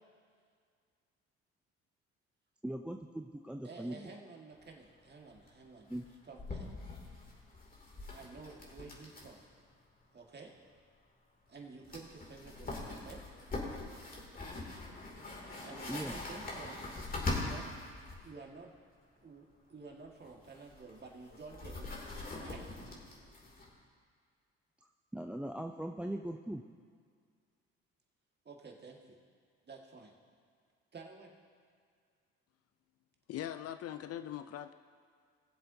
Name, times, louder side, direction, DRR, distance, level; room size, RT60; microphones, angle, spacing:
voice 1, 2.6-4.1 5.9-6.0 15.9-16.2 25.1-26.6, right 1 dB, 5° right, 4 dB, 0.5 m, -40 dB
voice 2, 3.6-5.9 6.3-6.7 8.1-9.4 10.1-10.5 11.5-13.2 15.6-16.8 17.3-17.7 18.2-18.7 19.2-21.9 22.4-22.6 28.5-29.0 29.7-30.1 30.9-31.3, right 4 dB, 35° right, 1 dB, 1.9 m, -51 dB
sound 1, 4.6-4.7 4.9-5.0 5.3-5.5 5.9-9.5 9.7-9.8 11.5-11.6 11.8-18.2 20.1-23.7, left 2 dB, 30° left, 2.7 m, -42 dB
voice 3, 33.3-34.7, left 11 dB, 50° left, 11 dB, 0.5 m, -41 dB
20.0 x 7.6 x 2.8 m, 2.1 s
hypercardioid pair, 55°, 31 cm